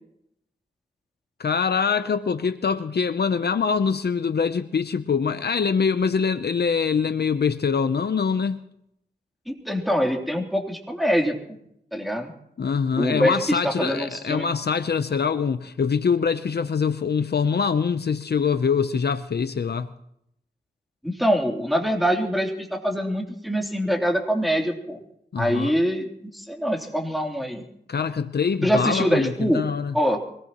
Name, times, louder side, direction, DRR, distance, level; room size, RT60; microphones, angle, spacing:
voice 1, 1.4-8.6 12.6-19.9 25.3-25.7 27.9-29.9, left 6 dB, 65° left, 0.7 m, -24 dB
voice 2, 9.5-11.6 11.9-12.3 13.0-14.5 21.0-25.0 25.4-27.6 28.6-29.6 29.9-30.2, equal, ahead, 3.3 m, -24 dB
24.5 x 19.0 x 3.0 m
wide cardioid pair, 65°, 18 cm